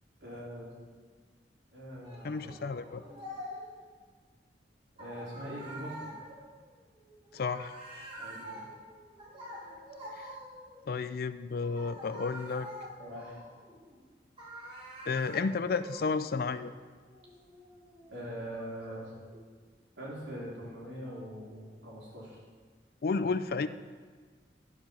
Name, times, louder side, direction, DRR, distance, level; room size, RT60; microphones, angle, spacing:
voice 1, 0.2-0.7 1.7-2.5 5.0-6.1 8.2-8.6 13.0-13.4 18.1-19.1 20.0-22.4, equal, 80° right, -6 dB, 3.5 m, -42 dB
sound 1, 2.0-3.8 5.0-10.9 11.6-14.0 14.4-19.4, equal, 30° right, 2.2 m, -47 dB
voice 2, 2.2-3.0 7.3-7.7 10.2-10.3 10.9-12.7 15.1-16.7 23.0-23.7, left 4 dB, 55° left, 13 dB, 0.4 m, -32 dB
11.5 x 5.0 x 7.0 m, 1.5 s
head